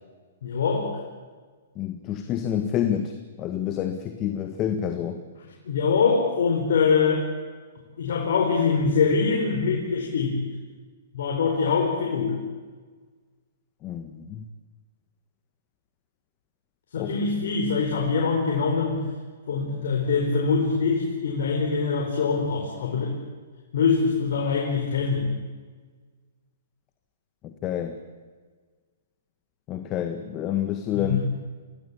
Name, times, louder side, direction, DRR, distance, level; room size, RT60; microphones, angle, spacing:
voice 1, 0.4-0.9 5.6-7.2 8.0-10.4 11.1-12.4 16.9-19.1 19.5-23.1 23.7-25.3 30.9-31.2, left 5 dB, 70° left, 0 dB, 4.8 m, -23 dB
voice 2, 1.7-5.2 13.8-14.4 17.0-17.1 27.4-28.0 29.7-31.2, left 10 dB, 25° left, 7 dB, 1.6 m, -28 dB
25.5 x 17.5 x 8.6 m, 1.5 s
hypercardioid pair, 140°, 0 cm